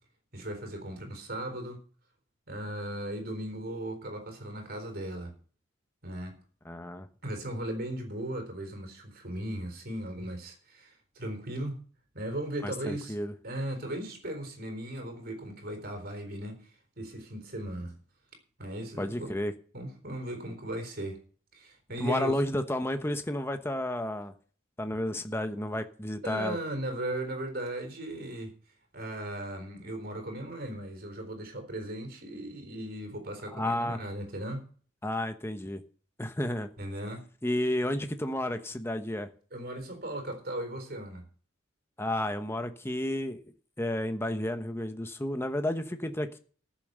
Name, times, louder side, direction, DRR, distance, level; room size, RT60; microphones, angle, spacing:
voice 1, 0.3-1.8 2.5-5.3 6.0-6.4 7.2-11.8 12.1-13.2 13.4-16.6 17.0-17.9 18.6-19.3 19.7-21.2 21.5-22.3 25.1-25.3 26.2-28.5 28.9-34.7 36.8-37.2 39.5-41.3, right 1 dB, 50° right, 4.1 m, -37 dB
voice 2, 6.6-7.1 12.6-13.3 19.0-19.5 22.0-24.3 24.8-26.6 33.5-34.0 35.0-35.8 36.2-36.7 37.4-39.3 42.0-43.4 43.8-46.4, left 1 dB, 10° left, 1.0 m, -31 dB
14.0 x 7.3 x 6.7 m
head